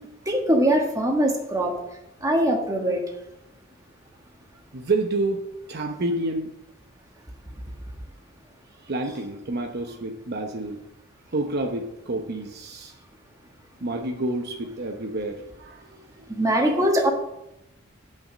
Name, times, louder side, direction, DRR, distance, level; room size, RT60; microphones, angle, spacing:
voice 1, 0.2-1.7 2.2-3.0 16.3-17.1, right 1 dB, 15° right, 1 dB, 1.6 m, -22 dB
voice 2, 4.7-6.5 8.8-10.8 11.3-13.0 13.8-16.4, right 2 dB, 55° right, 4 dB, 0.8 m, -29 dB
9.0 x 6.1 x 6.2 m, 0.86 s
head